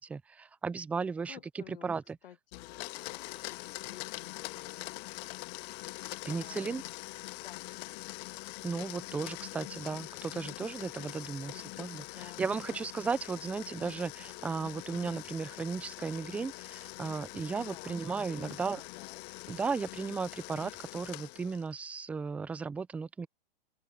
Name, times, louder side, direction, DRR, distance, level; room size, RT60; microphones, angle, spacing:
voice 1, 0.0-2.2 6.3-6.8 8.6-18.8 19.5-23.3, right 5 dB, 5° right, 0.3 m, -35 dB
voice 2, 1.3-1.9 2.2-5.1 5.8-6.9 7.4-7.7 12.0-12.9 17.7-19.2, left 11 dB, 70° left, 1.8 m, -53 dB
Domestic sounds home sounds, 2.5-21.7, left 25 dB, 45° left, 1.5 m, -44 dB
open air
hypercardioid pair, 125°, 29 cm